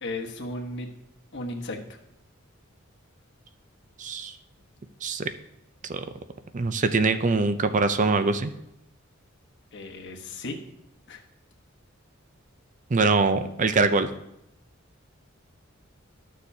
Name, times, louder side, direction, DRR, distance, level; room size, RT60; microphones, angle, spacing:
voice 1, 0.0-0.9 1.3-2.0 9.7-10.6 11.1-11.2, left 2 dB, 60° left, 2 dB, 1.2 m, -35 dB
voice 2, 4.0-4.3 5.0-5.3 5.9-6.0 6.5-8.5 12.9-14.1, right 3 dB, 35° right, 10 dB, 0.5 m, -23 dB
13.0 x 6.7 x 2.7 m, 0.82 s
head